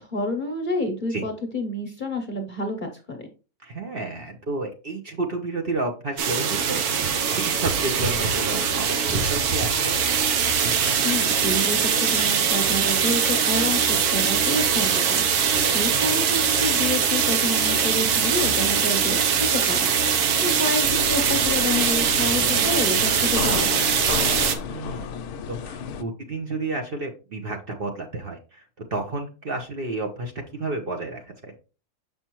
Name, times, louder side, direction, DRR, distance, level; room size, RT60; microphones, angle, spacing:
voice 1, 0.0-3.2 11.0-23.8, left 2 dB, 40° left, 4 dB, 0.8 m, -29 dB
voice 2, 3.6-10.0 15.8-16.0 24.7-25.1 25.5-28.6 28.9-31.5, right 2 dB, 45° right, 3 dB, 0.9 m, -31 dB
sound 1, 6.2-24.6, right 7 dB, 80° right, 1.3 m, -22 dB
sound 2, 20.8-26.0, left 7 dB, 80° left, 1.1 m, -32 dB
6.9 x 5.5 x 3.0 m, 0.33 s
omnidirectional pair, 1.6 m